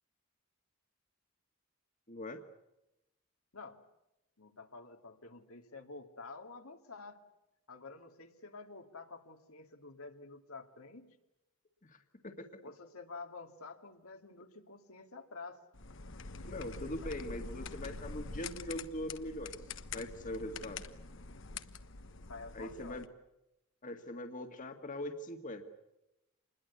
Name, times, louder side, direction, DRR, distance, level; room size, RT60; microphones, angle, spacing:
voice 1, 2.1-2.4 11.8-12.6 16.4-19.6 19.9-20.8 22.5-23.1 23.8-25.6, left 1 dB, 35° left, 6 dB, 1.9 m, -42 dB
voice 2, 4.4-7.2 7.7-11.2 12.6-15.6 17.0-17.1 22.3-23.1, left 3 dB, 80° left, 4 dB, 2.6 m, -49 dB
sound 1, 15.7-23.1, left 4 dB, 60° left, 1.3 m, -45 dB
27.0 x 21.0 x 8.4 m, 0.90 s
head